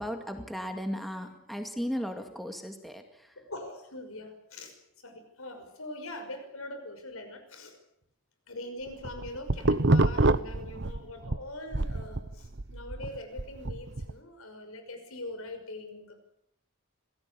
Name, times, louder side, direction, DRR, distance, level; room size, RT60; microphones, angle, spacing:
voice 1, 0.0-3.4, equal, ahead, 5 dB, 2.2 m, -36 dB
voice 2, 3.4-7.8 8.5-16.2, left 1 dB, 75° left, 7 dB, 5.9 m, -42 dB
sound 1, 8.9-11.4 11.7-14.1, right 2 dB, 55° right, 1.0 m, -26 dB
26.0 x 17.5 x 8.5 m, 0.74 s
head